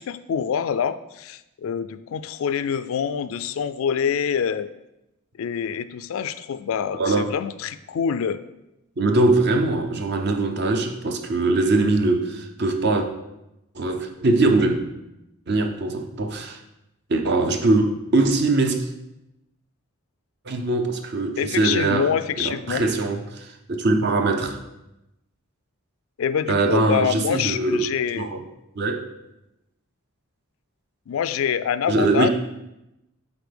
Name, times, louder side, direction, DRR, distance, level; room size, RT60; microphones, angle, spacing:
voice 1, 0.0-4.7 5.4-8.4 21.4-22.8 26.2-28.3 31.1-32.3, left 7 dB, 70° left, 13 dB, 0.3 m, -25 dB
voice 2, 6.9-7.3 9.0-13.1 13.7-14.8 15.5-16.6 17.1-18.9 20.5-22.1 22.4-24.6 26.5-27.9 28.2-28.4 28.8-29.1 31.9-32.3, right 2 dB, 50° right, 5 dB, 0.7 m, -22 dB
8.0 x 4.3 x 3.4 m, 0.90 s
head